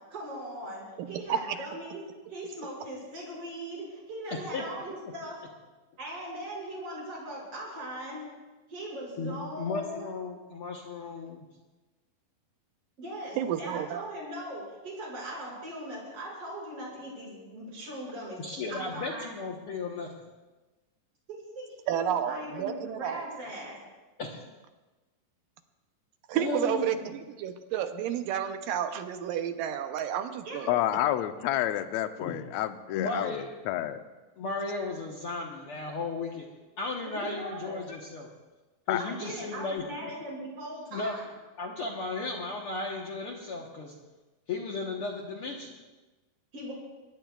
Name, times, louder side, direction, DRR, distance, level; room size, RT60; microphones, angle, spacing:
voice 1, 0.1-2.0 2.3-5.4 6.0-8.3 8.7-10.1 13.0-18.4 18.7-19.3 21.3-23.8 30.4-30.8 37.0-37.8 39.0-41.3 46.5-46.7, right 1 dB, 40° right, -4 dB, 6.8 m, -39 dB
voice 2, 1.0-1.6 13.4-14.1 21.9-23.4 26.3-30.8, right 9 dB, 80° right, 8 dB, 2.4 m, -31 dB
voice 3, 9.2-11.4 18.4-20.1 24.2-24.4 26.3-27.1 32.2-32.4 32.9-33.4 34.4-36.5 36.8-38.3 38.9-40.1 40.9-41.2 41.6-43.9 44.5-45.7, left 3 dB, 60° left, -1 dB, 1.5 m, -35 dB
voice 4, 30.7-34.0 38.9-39.0, left 13 dB, 85° left, 9 dB, 1.5 m, -29 dB
23.0 x 20.5 x 2.4 m, 1.2 s
omnidirectional pair, 4.0 m